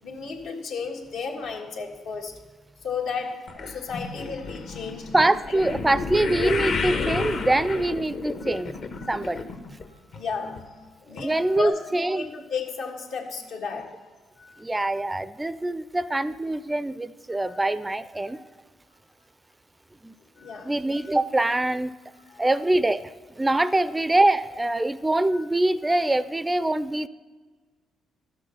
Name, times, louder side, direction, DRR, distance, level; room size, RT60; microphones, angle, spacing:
voice 1, 0.0-2.4 2.8-5.1 5.5-5.8 6.2-6.5 8.4-8.6 9.0-9.2 9.9-14.1 14.4-14.7 17.4-17.6 20.3-21.1 22.2-22.6 25.3-25.4, left 5 dB, 80° left, 1 dB, 1.6 m, -34 dB
sound 1, 3.5-9.9 10.1-10.6 11.2-11.3 11.6-11.7, left 4 dB, 60° left, 1.1 m, -31 dB
voice 2, 5.1-8.8 9.1-9.4 11.1-12.3 14.6-18.5 20.0-20.1 20.6-21.9 22.4-23.1 23.4-27.1, right 2 dB, 15° right, 15 dB, 0.4 m, -24 dB
13.0 x 6.2 x 6.8 m, 1.4 s
cardioid pair, 90°, 0 cm